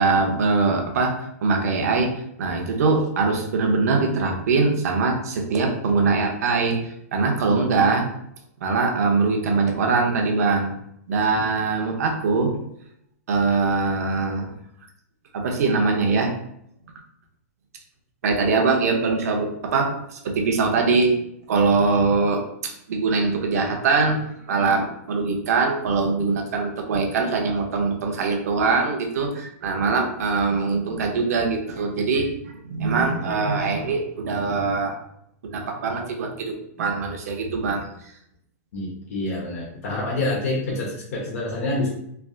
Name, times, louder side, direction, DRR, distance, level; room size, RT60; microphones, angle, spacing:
voice 1, 0.0-8.1 8.6-10.7 11.1-12.5 13.3-14.5 15.3-16.3 18.2-21.1 21.5-35.0 35.4-37.9, right 4 dB, 75° right, 2 dB, 0.7 m, -22 dB
voice 2, 38.7-41.9, left 2 dB, 60° left, -3 dB, 0.9 m, -27 dB
3.3 x 2.5 x 2.4 m, 0.75 s
hypercardioid pair, 160°, 9 cm